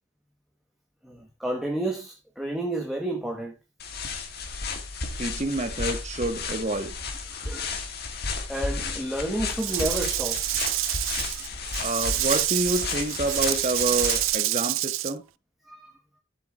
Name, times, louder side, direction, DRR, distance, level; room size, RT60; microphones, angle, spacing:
voice 1, 1.0-3.6 7.3-7.8 8.5-10.8 11.3-11.5 15.7-16.0, right 1 dB, ahead, 1.1 m, -31 dB
sound 1, 3.8-14.4, left 4 dB, 50° left, 1.7 m, -33 dB
voice 2, 5.2-6.9 11.8-15.2, right 2 dB, 35° right, 1.3 m, -28 dB
Rattle / Rattle (instrument), 9.6-15.1, right 18 dB, 80° right, 0.4 m, -27 dB
15.0 x 7.5 x 2.4 m
head